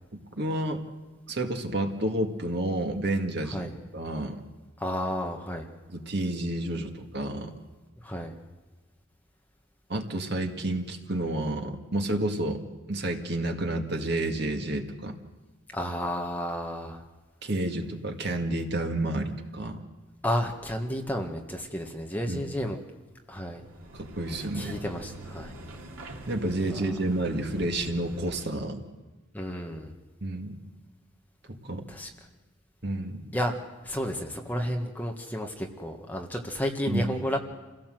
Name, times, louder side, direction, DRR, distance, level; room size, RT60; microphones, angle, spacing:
voice 1, 0.4-0.8 1.3-4.4 5.9-7.5 9.9-12.6 12.9-15.2 17.4-19.8 22.3-22.4 23.9-24.8 26.3-28.8 30.2-30.6 31.5-31.8 32.8-33.3 36.9-37.0, right 1 dB, 50° right, 4 dB, 2.0 m, -30 dB
voice 2, 4.8-5.7 8.0-8.3 15.7-17.0 20.2-22.8 23.3-23.6 24.5-25.5 26.7-26.8 29.3-29.9 31.9-32.1 33.3-33.6 33.8-37.4, equal, 10° left, 2 dB, 1.6 m, -31 dB
sound 1, 23.6-28.6, right 1 dB, 80° right, 2.7 m, -43 dB
28.0 x 17.0 x 7.8 m, 1.3 s
head